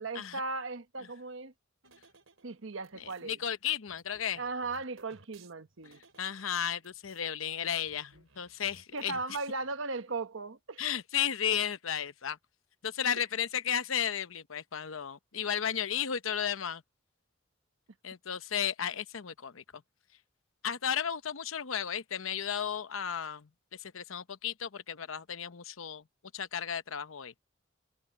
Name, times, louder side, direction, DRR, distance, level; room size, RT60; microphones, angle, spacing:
voice 1, 0.0-1.5 2.4-3.4 4.4-6.0 8.9-10.8, right 3 dB, 70° right, 1.1 m, -37 dB
sound 1, 1.8-3.3 3.9-7.3 7.5-7.6 7.9-9.8, right 4 dB, 90° right, 3.2 m, -61 dB
voice 2, 3.0-4.4 6.2-9.2 10.8-12.4 12.8-16.8 18.0-19.8 20.6-23.5 23.8-26.0 26.3-27.3, left 8 dB, 80° left, 0.8 m, -34 dB
head